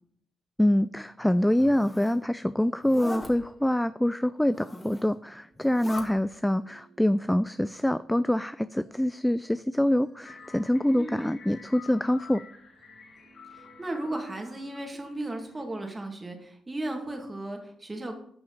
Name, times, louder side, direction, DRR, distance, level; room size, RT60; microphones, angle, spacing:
voice 1, 0.6-12.4, left 1 dB, 5° left, 14 dB, 0.3 m, -25 dB
sound 1, 1.0-14.9, right 3 dB, 75° right, 4.1 m, -60 dB
Zipper (clothing), 1.4-2.2 2.8-3.3 4.4-5.1 5.5-6.1, left 1 dB, 25° left, 2.2 m, -40 dB
sound 2, 10.2-15.6, left 5 dB, 60° left, 1.5 m, -50 dB
voice 2, 13.5-18.1, right 1 dB, 25° right, 3 dB, 2.1 m, -35 dB
10.5 x 5.7 x 4.0 m, 0.66 s
supercardioid pair, 50°, 0 cm